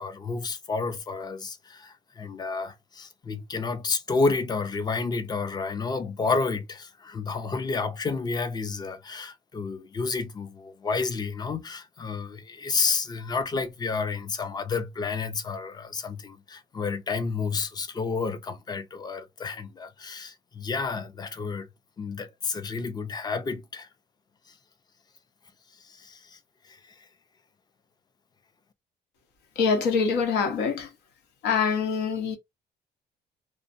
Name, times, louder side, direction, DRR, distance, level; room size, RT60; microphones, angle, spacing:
voice 1, 0.0-21.7 22.0-23.9 25.7-26.4 26.6-27.1, left 4 dB, 25° left, 0.4 m, -30 dB
voice 2, 29.6-30.9 31.4-32.4, left 5 dB, 85° left, 0.9 m, -24 dB
2.6 x 2.0 x 2.5 m
cardioid pair, 110°, 17 cm